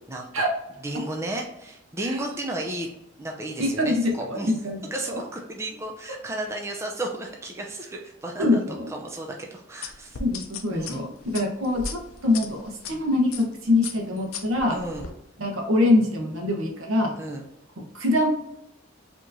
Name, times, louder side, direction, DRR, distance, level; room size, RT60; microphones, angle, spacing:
voice 1, 0.1-0.4 0.8-2.9 3.2-4.5 4.9-8.6 8.9-10.2 10.7-11.1 14.7-15.1 17.2-17.4, right 1 dB, 15° right, 1 dB, 0.4 m, -33 dB
voice 2, 3.6-4.8 5.1-5.2 8.4-8.8 10.2-14.7 15.4-17.1 17.9-18.3, left 2 dB, 85° right, 1 dB, 1.0 m, -24 dB
sound 1, 9.8-12.9 13.3-13.5 13.8-15.1, left 5 dB, 85° left, 0.5 m, -36 dB
4.5 x 2.9 x 2.6 m, 0.83 s
head